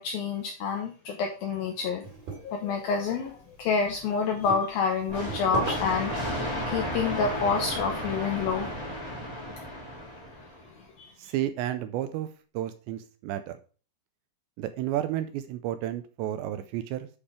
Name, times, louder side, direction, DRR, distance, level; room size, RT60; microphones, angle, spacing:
voice 1, 0.0-2.0 2.4-6.1 6.7-8.7 11.0-11.1, left 5 dB, 80° left, 3 dB, 2.1 m, -28 dB
sound 1, 2.0-8.6, right 3 dB, 55° right, 4.4 m, -41 dB
sound 2, 5.1-10.7, equal, 15° left, 1.1 m, -33 dB
voice 2, 11.2-12.3 12.5-13.6 14.6-17.1, right 12 dB, 85° right, 10 dB, 2.6 m, -31 dB
8.7 x 5.1 x 4.8 m, 0.38 s
omnidirectional pair, 5.4 m